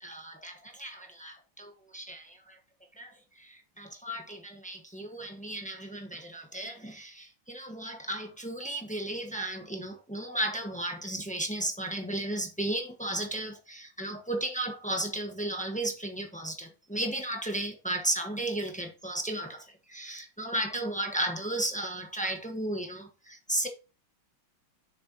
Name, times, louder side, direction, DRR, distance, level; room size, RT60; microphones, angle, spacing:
voice 1, 0.0-2.6 3.0-23.7, right 1 dB, 5° left, 0.8 m, -34 dB
7.6 x 6.4 x 2.9 m
omnidirectional pair, 2.2 m